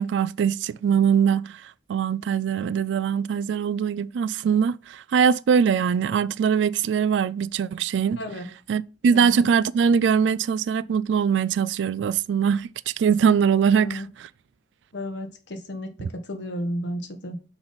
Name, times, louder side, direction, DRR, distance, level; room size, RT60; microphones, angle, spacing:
voice 1, 0.0-8.2 8.7-14.3, right 7 dB, 70° right, 0.3 m, -22 dB
voice 2, 8.2-8.5 9.1-9.4 13.7-14.1 14.9-17.4, equal, 70° left, 1.2 m, -33 dB
6.0 x 4.0 x 5.2 m
head